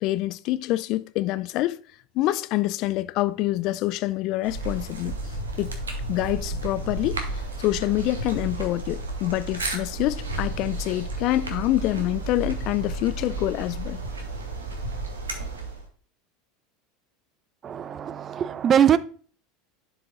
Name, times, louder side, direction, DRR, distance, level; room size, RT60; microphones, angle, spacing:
voice 1, 0.0-1.8 2.2-5.2 5.6-5.8 6.1-14.0, left 16 dB, 50° left, 0.4 m, -26 dB
sound 1, 4.4-15.9, right 2 dB, 80° right, 1.2 m, -32 dB
voice 2, 17.6-19.0, right 9 dB, 35° right, 0.4 m, -21 dB
11.0 x 4.6 x 2.5 m
figure-of-eight pair, 75°, 0 cm